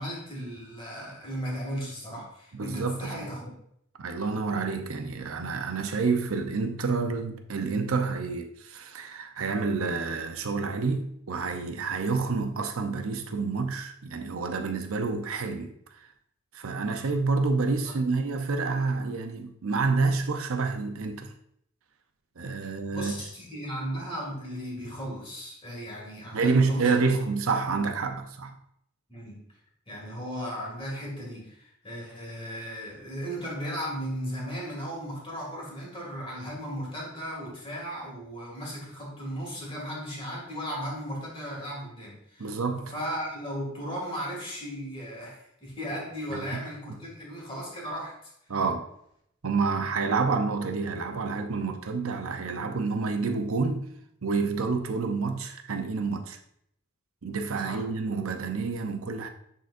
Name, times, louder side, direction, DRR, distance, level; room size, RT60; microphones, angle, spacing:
voice 1, 0.0-3.5 17.8-18.0 22.9-27.3 29.1-29.4 29.9-42.6 42.9-48.3 57.6-57.9, equal, 25° left, 2.2 m, -36 dB
voice 2, 2.5-3.1 4.0-15.7 16.5-21.3 22.4-23.1 26.3-28.5 42.4-42.9 46.3-46.6 48.5-48.8 49.4-53.9 54.2-56.4 57.2-59.3, right 4 dB, 75° right, 0.7 m, -28 dB
10.5 x 4.0 x 2.6 m
head